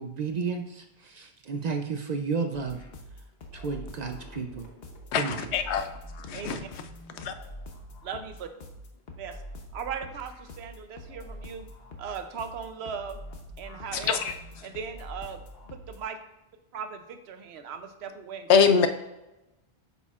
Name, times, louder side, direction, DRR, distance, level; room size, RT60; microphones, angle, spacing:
voice 1, 0.0-2.8 3.5-4.7 5.1-5.5, right 5 dB, 55° right, 5 dB, 0.5 m, -32 dB
sound 1, 2.5-16.0, left 1 dB, 65° left, 1.1 m, -45 dB
voice 2, 5.1-5.9 6.3-6.6 7.2-7.3 13.9-14.3 18.5-18.9, left 6 dB, 90° left, 9 dB, 0.9 m, -23 dB
voice 3, 8.0-8.5 9.2-9.4 9.7-11.7 12.0-13.2 13.6-14.3 14.6-15.4 15.7-16.2 16.7-18.6, right 6 dB, 75° right, 8 dB, 0.9 m, -38 dB
8.3 x 5.5 x 2.4 m, 0.95 s
omnidirectional pair, 1.1 m